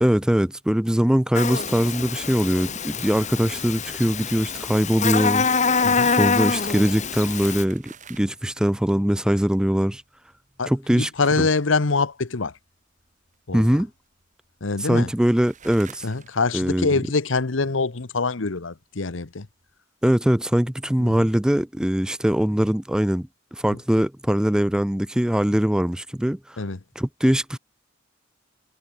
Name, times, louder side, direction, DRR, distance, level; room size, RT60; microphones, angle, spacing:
voice 1, 0.0-5.5 6.0-10.0 10.7-11.1 13.5-13.9 14.9-16.0 16.5-16.9 20.0-26.6 27.0-27.6, equal, 5° right, 0.4 m, -22 dB
Buzz, 1.3-7.6, left 5 dB, 40° left, 1.7 m, -25 dB
voice 2, 5.8-6.2 10.6-12.6 13.5-13.8 14.6-15.1 16.0-19.5 21.0-21.3 23.7-23.8 26.6-26.8, left 3 dB, 75° left, 1.1 m, -25 dB
sound 1, 7.1-19.8, right 6 dB, 40° right, 6.4 m, -53 dB
head